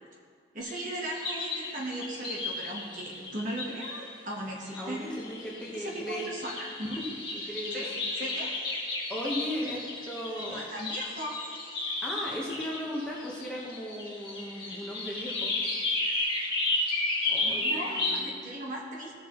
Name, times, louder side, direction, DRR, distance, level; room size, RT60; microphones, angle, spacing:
voice 1, 0.5-5.3 5.7-7.0 7.7-8.5 9.6-9.8 10.4-11.3 17.4-19.2, right 1 dB, 45° right, -2 dB, 1.3 m, -37 dB
sound 1, 0.6-4.1 4.7-18.2, left 2 dB, 25° left, 2.0 m, -33 dB
voice 2, 4.8-6.3 7.3-7.8 9.1-9.8 10.1-10.6 12.0-15.5 17.3-18.4, equal, 5° left, -5 dB, 1.3 m, -36 dB
16.5 x 6.8 x 3.1 m, 2.2 s
head